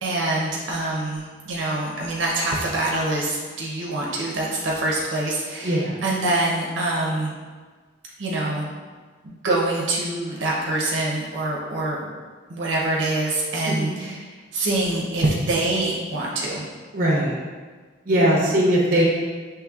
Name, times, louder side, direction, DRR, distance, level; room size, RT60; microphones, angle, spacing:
voice 1, 0.0-7.3 8.2-8.7 9.2-12.0 12.5-16.7, right 2 dB, 85° right, -4 dB, 0.7 m, -25 dB
voice 2, 5.6-6.0 13.6-13.9 16.9-17.3 18.0-19.0, equal, 50° right, -4 dB, 0.9 m, -20 dB
6.0 x 3.1 x 2.4 m, 1.4 s
head